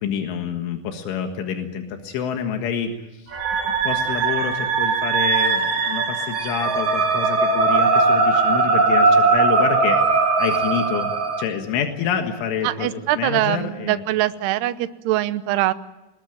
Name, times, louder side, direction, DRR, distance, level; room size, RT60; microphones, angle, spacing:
voice 1, 0.0-2.9 3.6-10.0 10.4-14.0, left 7 dB, 85° left, 5 dB, 4.1 m, -27 dB
sound 1, 3.3-11.4, right 4 dB, 50° right, 4.3 m, -19 dB
voice 2, 12.6-15.7, right 15 dB, 75° right, 12 dB, 2.7 m, -23 dB
26.0 x 20.0 x 9.2 m, 1.0 s
omnidirectional pair, 5.5 m